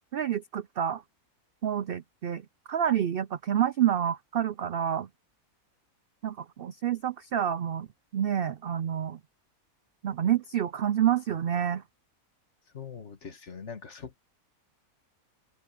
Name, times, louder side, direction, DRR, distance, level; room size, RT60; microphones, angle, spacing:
voice 1, 0.1-1.0 1.6-5.1 6.2-7.9 8.1-9.2 10.0-11.8, right 10 dB, 75° right, 0.5 m, -28 dB
voice 2, 12.7-14.1, left 6 dB, 50° left, 1.9 m, -42 dB
omnidirectional pair, 1.6 m